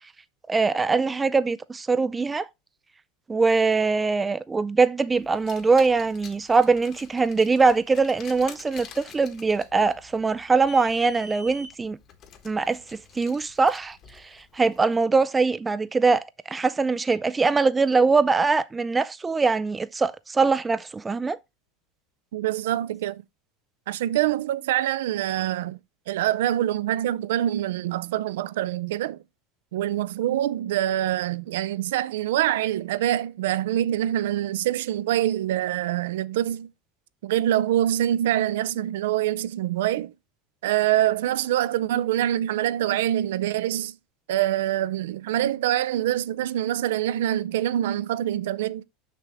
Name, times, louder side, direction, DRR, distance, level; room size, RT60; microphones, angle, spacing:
voice 1, 0.5-2.5 3.3-12.0 12.4-12.8 13.2-14.0 14.5-21.4, right 4 dB, 10° right, 0.4 m, -22 dB
Car, 5.3-14.8, left 4 dB, 35° left, 1.3 m, -46 dB
voice 2, 22.3-23.2 23.9-25.8 26.1-29.2 29.7-36.7 37.2-40.1 40.6-43.9 44.3-48.8, right 12 dB, 85° right, 0.5 m, -25 dB
6.6 x 6.2 x 3.4 m
supercardioid pair, 150°, 0 cm